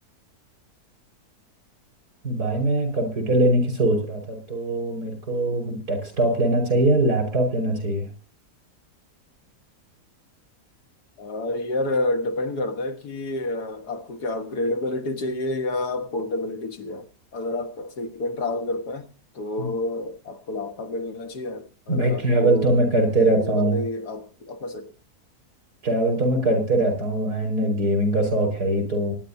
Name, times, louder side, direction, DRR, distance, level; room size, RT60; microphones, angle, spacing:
voice 1, 2.2-8.1 19.6-19.7 21.9-23.8 25.8-29.1, right 1 dB, 75° right, 5.8 m, -22 dB
voice 2, 11.2-22.8 23.2-24.9, left 2 dB, 90° left, 2.1 m, -29 dB
24.5 x 10.5 x 2.8 m
omnidirectional pair, 1.7 m